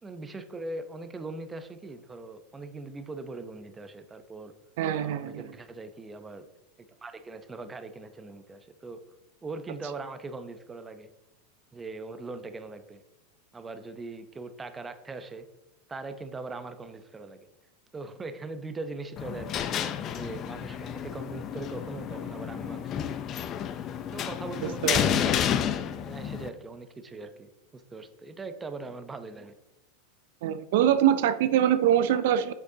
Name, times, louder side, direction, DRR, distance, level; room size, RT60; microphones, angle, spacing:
voice 1, 0.0-4.5 5.0-6.5 6.9-9.0 9.4-11.1 11.7-13.0 13.5-15.5 15.9-17.5 17.9-19.7 20.1-23.5 24.1-25.5 26.0-29.5, right 3 dB, 15° right, 9 dB, 0.6 m, -40 dB
voice 2, 4.8-5.4 24.8-25.0 30.4-32.5, right 10 dB, 70° right, 12 dB, 0.4 m, -23 dB
sound 1, 19.2-26.5, left 9 dB, 40° left, 0.5 m, -30 dB
8.2 x 6.4 x 2.8 m, 0.95 s
hypercardioid pair, 120°, 0 cm